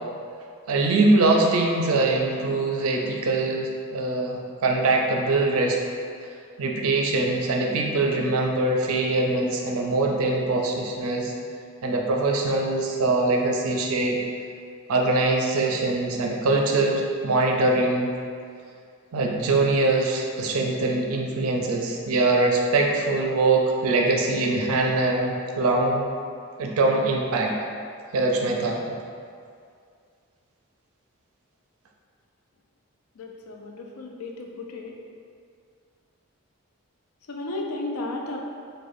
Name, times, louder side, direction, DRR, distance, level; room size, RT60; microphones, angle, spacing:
voice 1, 0.7-5.8 6.6-11.3 11.8-14.2 14.9-18.1 19.1-26.1 26.6-27.5 28.1-28.8, right 2 dB, 80° right, 1 dB, 0.4 m, -23 dB
voice 2, 33.2-34.9 37.3-38.4, left 2 dB, 85° left, 1 dB, 0.4 m, -34 dB
4.7 x 2.1 x 2.6 m, 2.3 s
head